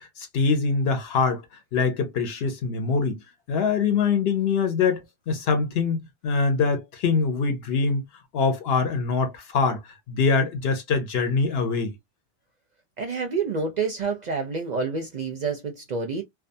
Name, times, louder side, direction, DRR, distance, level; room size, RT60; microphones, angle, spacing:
voice 1, 0.0-1.4 1.7-3.2 3.5-8.0 8.3-11.9, left 4 dB, 75° left, 0.9 m, -24 dB
voice 2, 13.0-16.2, right 4 dB, 55° right, 0.5 m, -28 dB
2.4 x 2.4 x 2.5 m
omnidirectional pair, 1.1 m